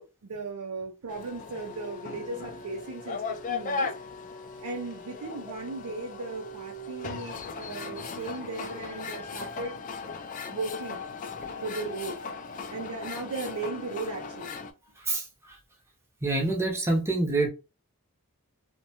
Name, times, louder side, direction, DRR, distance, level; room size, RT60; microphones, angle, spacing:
voice 1, 0.0-3.9 4.6-9.7 10.5-11.1 11.6-12.2 12.7-14.5, right 3 dB, 85° right, 0.5 m, -37 dB
sound 1, 1.1-14.7, left 4 dB, 35° left, 0.3 m, -38 dB
voice 2, 15.0-15.6 16.2-17.5, right 2 dB, 10° right, 0.6 m, -27 dB
2.6 x 2.1 x 2.8 m
head